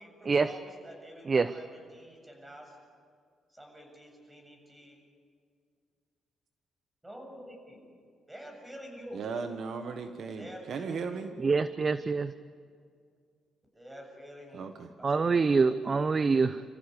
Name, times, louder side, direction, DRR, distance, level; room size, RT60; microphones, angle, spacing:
voice 1, 0.0-2.8 3.5-5.0 7.0-7.8 8.3-9.2 10.4-11.3 11.6-12.0 13.7-14.7 15.0-15.9, equal, 10° right, 2 dB, 7.3 m, -48 dB
voice 2, 9.1-11.3 14.5-14.9, right 5 dB, 60° right, 7 dB, 1.4 m, -37 dB
voice 3, 11.4-12.3 15.0-16.6, right 4 dB, 35° right, 13 dB, 0.7 m, -25 dB
27.0 x 15.0 x 8.4 m, 2.1 s
cardioid pair, 90°, 0 cm